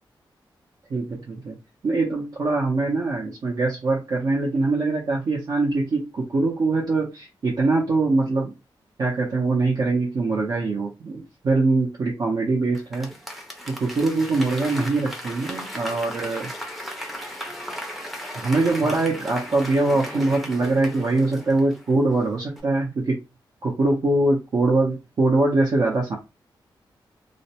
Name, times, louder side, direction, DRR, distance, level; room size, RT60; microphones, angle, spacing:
voice 1, 0.9-1.6 1.8-8.5 9.0-13.1 13.7-16.5 18.3-23.2 23.6-26.2, right 2 dB, 55° right, 0.6 m, -23 dB
Applause / Crowd, 12.7-22.2 22.6-22.7, equal, ahead, 0.5 m, -36 dB
2.4 x 2.1 x 2.8 m
wide cardioid pair, 145°, 8 cm